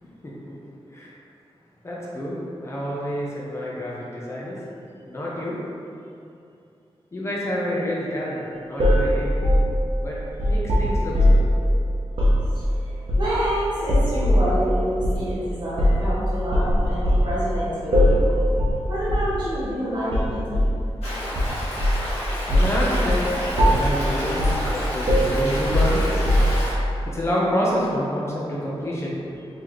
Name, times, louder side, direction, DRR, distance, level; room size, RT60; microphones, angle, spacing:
voice 1, 1.8-4.6 5.1-5.6 7.1-9.3 10.0-11.4 21.7-22.1 22.5-26.3 27.1-29.4, equal, 25° left, -6 dB, 0.6 m, -28 dB
sound 1, 8.8-11.6 12.1-12.4 13.1-13.5 13.9-14.5 15.0-15.2 15.8-16.1 16.5-17.3 17.9-18.3 18.6-18.8 19.1-19.3 20.1-20.7 21.3-22.1 22.5-22.8 23.1-23.3 23.6-24.0 24.4-24.7 25.1-26.7, equal, 60° right, 0.7 m, -19 dB
voice 2, 12.5-18.4 18.9-20.6, equal, 45° right, -10 dB, 1.5 m, -28 dB
Stream, 21.0-26.7, equal, 85° left, 1.2 m, -30 dB
3.9 x 3.2 x 3.0 m, 2.6 s
wide cardioid pair, 150°, 10 cm